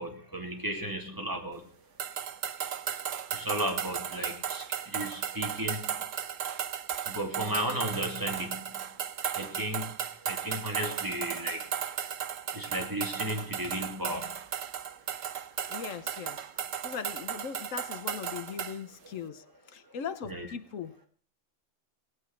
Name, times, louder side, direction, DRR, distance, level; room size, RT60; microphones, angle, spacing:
voice 1, 0.0-1.6 3.3-5.9 7.1-8.6 9.4-9.8 10.3-11.6 12.5-14.3 20.3-20.5, equal, 15° right, 1 dB, 3.1 m, -34 dB
sound 1, 2.0-18.8, right 9 dB, 85° right, 1.3 m, -35 dB
voice 2, 15.6-21.0, left 7 dB, 90° left, 12 dB, 1.4 m, -40 dB
18.5 x 9.5 x 6.1 m, 0.41 s
omnidirectional pair, 1.3 m